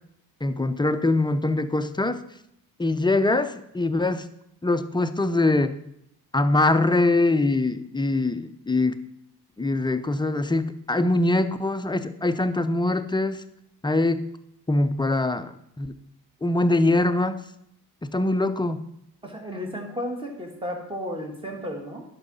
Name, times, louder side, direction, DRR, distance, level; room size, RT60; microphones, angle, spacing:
voice 1, 0.4-2.2 2.8-4.3 4.6-5.8 6.3-8.9 9.6-13.4 13.8-14.3 14.7-15.9 16.4-17.4 18.0-18.8, left 2 dB, 10° left, 9 dB, 0.5 m, -23 dB
voice 2, 19.2-22.0, equal, 15° right, 2 dB, 2.0 m, -33 dB
10.5 x 6.2 x 5.5 m, 0.75 s
cardioid pair, 125°, 40 cm